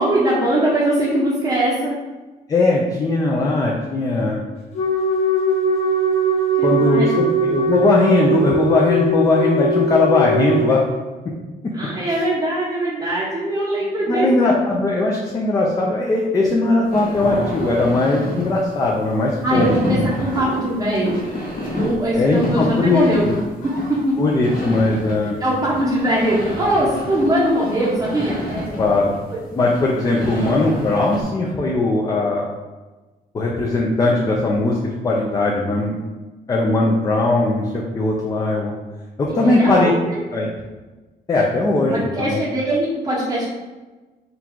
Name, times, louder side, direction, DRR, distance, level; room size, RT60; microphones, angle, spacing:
voice 1, 0.0-2.0 6.6-7.1 11.7-14.3 19.4-21.5 21.8-23.3 23.6-24.2 25.4-28.8 39.3-40.1 41.9-43.4, right 1 dB, 20° right, -8 dB, 0.7 m, -21 dB
voice 2, 2.5-4.4 6.6-10.8 14.1-20.0 22.1-23.3 24.2-25.4 28.8-29.1 29.6-32.4 33.3-34.8 35.0-36.0 36.5-38.7 39.2-39.9 40.3-40.5 41.3-42.4, left 2 dB, 25° left, -2 dB, 0.4 m, -19 dB
Wind instrument woodwind instrument, 4.7-10.8, right 1 dB, 45° left, 0.9 m, -20 dB
sound 1, 16.8-31.2, left 1 dB, 65° left, 1.1 m, -29 dB
3.9 x 2.3 x 4.4 m, 1.2 s
cardioid pair, 170°, 16 cm